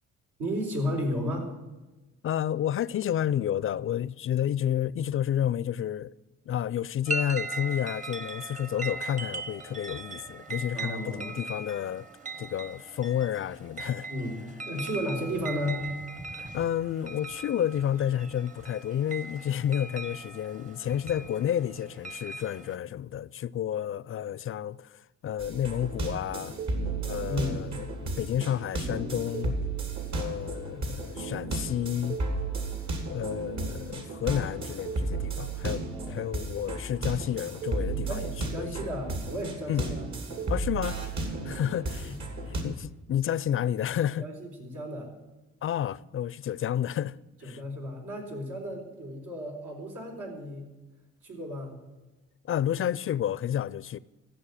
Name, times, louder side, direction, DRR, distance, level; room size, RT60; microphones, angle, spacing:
voice 1, 0.4-1.6 10.7-11.4 14.1-15.9 27.2-27.7 35.9-36.2 38.1-40.1 41.4-41.6 42.0-42.2 44.1-45.1 47.4-50.7 51.2-51.8, equal, 85° right, 4.1 m, -34 dB
voice 2, 2.2-6.1 6.5-12.0 12.4-14.1 16.3-26.6 27.0-27.7 28.2-29.6 30.1-32.2 33.0-38.3 38.6-38.7 39.7-39.8 40.5-41.0 41.5-42.1 42.6-44.2 45.6-47.2 47.4-47.6 52.5-54.0, left 10 dB, 45° left, 0.4 m, -30 dB
sound 1, 7.1-22.8, right 3 dB, 25° right, 0.8 m, -39 dB
sound 2, 25.4-42.6, right 3 dB, 65° right, 3.0 m, -33 dB
14.0 x 6.7 x 9.9 m
cardioid pair, 90°, 30 cm